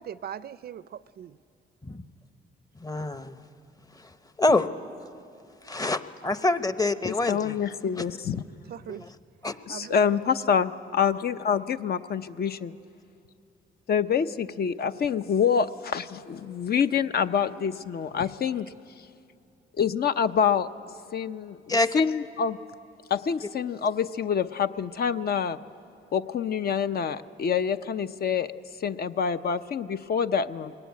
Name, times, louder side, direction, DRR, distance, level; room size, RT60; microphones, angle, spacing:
voice 1, 0.0-1.4 8.7-9.1 9.7-10.0, right 9 dB, 55° right, 17 dB, 0.5 m, -40 dB
voice 2, 2.8-3.4 4.4-4.7 5.6-7.6 8.0-8.1 9.4-9.6 21.7-22.0, left 2 dB, 20° left, 11 dB, 0.9 m, -26 dB
voice 3, 7.3-8.4 9.7-12.7 13.9-18.7 19.8-20.7 21.1-21.6 21.9-22.6 23.1-25.6 26.1-28.5 28.8-30.7, left 7 dB, 50° left, 11 dB, 0.7 m, -26 dB
22.0 x 18.0 x 9.5 m, 2.5 s
cardioid pair, 90°, 20 cm